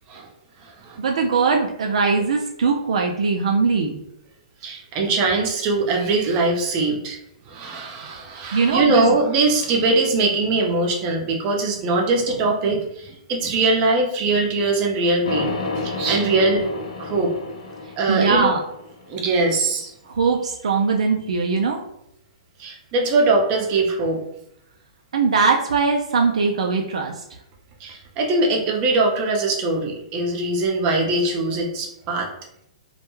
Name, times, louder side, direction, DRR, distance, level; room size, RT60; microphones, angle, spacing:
voice 1, 1.0-4.0 8.5-9.2 17.8-18.6 20.0-21.8 25.1-27.2, right 4 dB, 75° right, 2 dB, 0.3 m, -21 dB
voice 2, 4.6-7.2 7.5-16.6 17.0-17.3 18.0-18.5 19.1-19.9 22.6-24.2 27.8-32.3, right 3 dB, 35° right, 0 dB, 0.6 m, -21 dB
sound 1, 15.2-19.4, left 3 dB, 70° left, 0.5 m, -30 dB
2.2 x 2.1 x 3.0 m, 0.77 s
hypercardioid pair, 120°, 4 cm